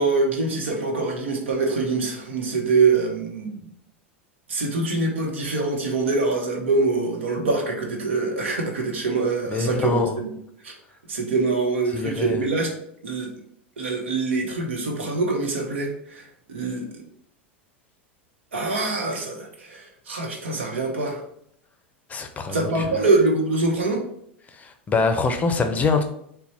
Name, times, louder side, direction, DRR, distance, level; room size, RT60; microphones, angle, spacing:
voice 1, 0.0-3.7 4.5-10.3 10.6-10.8 11.1-12.7 13.0-13.3 13.8-17.0 18.5-21.2 22.5-24.0, right 3 dB, 80° right, 1 dB, 0.9 m, -24 dB
voice 2, 9.5-10.2 11.9-12.5 22.1-22.9 24.5-26.0, left 4 dB, 25° left, 7 dB, 0.6 m, -24 dB
4.1 x 2.2 x 4.2 m, 0.70 s
hypercardioid pair, 95°, 6 cm